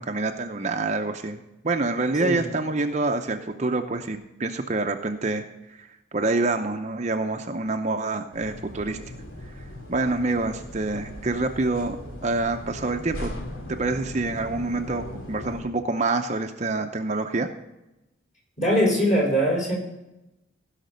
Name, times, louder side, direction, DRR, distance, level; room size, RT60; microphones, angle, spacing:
voice 1, 0.0-9.0 9.5-9.6 9.9-12.0 12.2-13.3 13.7-17.5, right 3 dB, 35° right, 6 dB, 0.6 m, -27 dB
sound 1, 8.3-15.6, left 1 dB, 90° left, 2.3 m, -38 dB
voice 2, 18.6-19.8, equal, 40° left, -3 dB, 4.9 m, -21 dB
16.0 x 5.8 x 5.2 m, 0.93 s
head